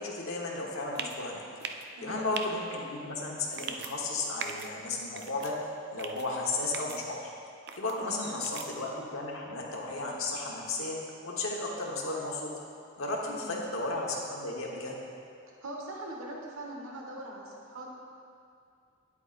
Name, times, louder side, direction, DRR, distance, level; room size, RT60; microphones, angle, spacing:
voice 1, 0.0-1.4 2.0-5.5 5.9-7.3 7.7-12.5 13.0-14.9, left 2 dB, 80° left, -2 dB, 1.2 m, -34 dB
sound 1, 1.0-1.2 1.6-1.9 2.3-2.5 3.5-3.9 4.4-4.7 5.2-5.5 6.0-6.3 6.7-7.0 7.7-7.9 8.4-8.7, right 7 dB, 55° right, 0.4 m, -38 dB
voice 2, 1.9-2.3 8.0-8.3 13.2-13.5 15.5-17.9, right 1 dB, 85° right, -1 dB, 1.3 m, -41 dB
9.8 x 8.2 x 2.5 m, 2.4 s
head